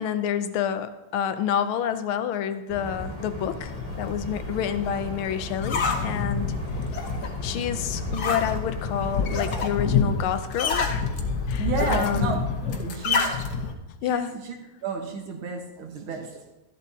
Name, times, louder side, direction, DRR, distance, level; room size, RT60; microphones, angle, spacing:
voice 1, 0.0-3.7 4.0-6.5 7.4-11.1 11.5-12.4 14.0-14.3, left 9 dB, 80° left, 10 dB, 1.6 m, -28 dB
sound 1, 2.7-9.9, left 1 dB, 5° left, 1.9 m, -36 dB
sound 2, 3.7-13.7, left 5 dB, 55° left, 1.3 m, -28 dB
voice 2, 11.6-13.3 14.1-14.6 14.8-16.6, right 5 dB, 75° right, 3 dB, 2.1 m, -32 dB
12.5 x 12.0 x 2.8 m, 1.0 s
omnidirectional pair, 2.3 m